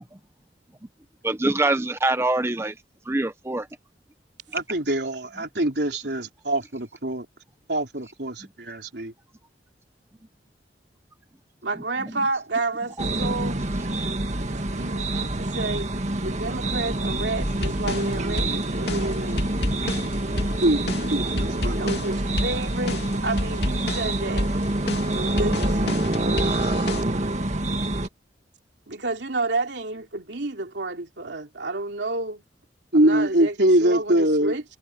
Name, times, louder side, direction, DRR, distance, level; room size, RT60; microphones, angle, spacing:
voice 1, 1.2-2.7 3.1-3.7 4.5-4.6, right 2 dB, 15° right, 0.8 m, -24 dB
voice 2, 4.5-7.3 7.7-9.1 20.6-20.8 21.1-21.8 32.9-34.5, right 1 dB, 65° right, 4.3 m, -23 dB
voice 3, 11.6-13.6 14.5-15.9 16.2-19.5 21.8-24.5 25.1-26.1 28.9-32.4 32.9-34.6, right 2 dB, 90° right, 2.8 m, -30 dB
sound 1, 13.0-28.1, right 1 dB, 40° right, 1.8 m, -26 dB
sound 2, 17.4-27.0, left 1 dB, 65° left, 2.9 m, -30 dB
head